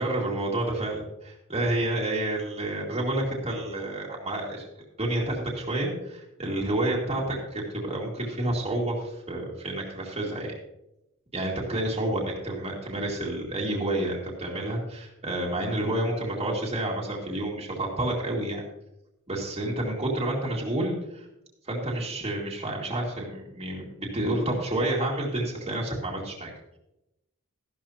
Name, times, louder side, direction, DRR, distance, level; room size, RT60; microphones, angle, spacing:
voice 1, 0.0-4.6 5.0-10.5 11.3-18.6 19.3-21.3 21.6-26.5, right 1 dB, 30° right, -3 dB, 2.2 m, -29 dB
13.0 x 12.0 x 2.9 m, 0.86 s
head